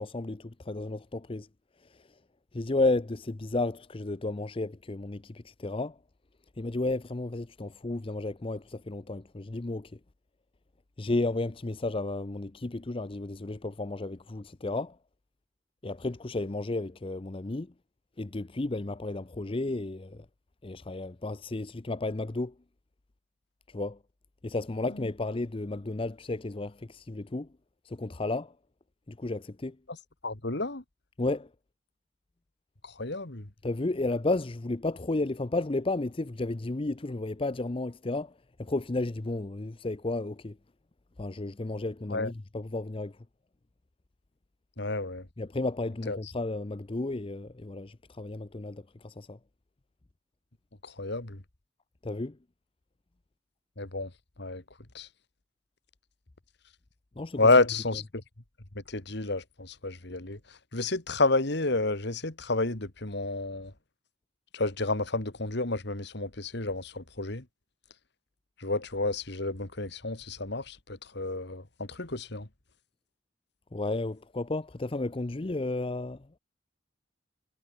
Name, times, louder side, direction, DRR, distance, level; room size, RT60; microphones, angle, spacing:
voice 1, 0.0-1.5 2.5-6.0 6.6-9.9 11.0-15.0 15.8-17.7 18.2-20.3 20.6-22.5 23.7-24.0 24.4-27.5 27.8-28.5 29.1-29.8 31.2-31.5 33.6-38.3 38.6-40.6 41.2-43.1 45.4-49.4 52.0-52.4 57.2-57.5 73.7-76.2, left 2 dB, 30° left, 0.6 m, -32 dB
voice 2, 30.2-30.8 32.8-33.5 42.1-42.3 44.8-45.2 46.1-46.2 50.8-51.4 53.8-54.1 54.4-54.6 54.9-55.1 57.4-58.2 58.9-60.4 60.7-63.7 64.5-67.4 68.6-72.5, left 2 dB, 60° left, 2.2 m, -30 dB
head